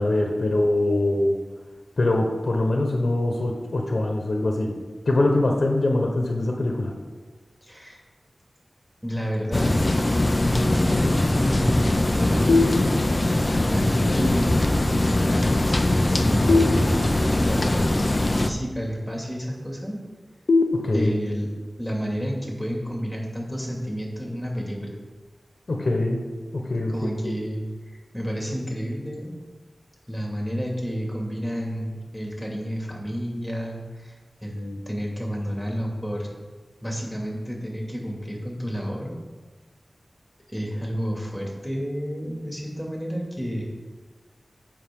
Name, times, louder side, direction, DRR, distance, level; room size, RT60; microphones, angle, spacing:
voice 1, 0.0-1.3 2.0-4.7 5.0-6.9 20.7-21.1 25.7-26.2 26.5-26.9 27.3-27.4, left 2 dB, 65° left, 1 dB, 1.2 m, -23 dB
voice 2, 7.6-8.0 9.0-10.0 10.5-11.9 12.1-12.6 13.7-14.7 15.0-20.0 20.9-21.5 21.8-24.9 26.9-29.3 30.1-36.3 36.8-39.1 40.5-43.6, equal, ahead, -2 dB, 2.4 m, -30 dB
sound 1, 9.5-18.5, left 1 dB, 30° left, 0.6 m, -21 dB
sound 2, 12.5-13.4 16.5-17.5 20.5-21.5, left 3 dB, 80° left, 0.7 m, -23 dB
14.5 x 5.6 x 3.8 m, 1.3 s
wide cardioid pair, 90°, 0 cm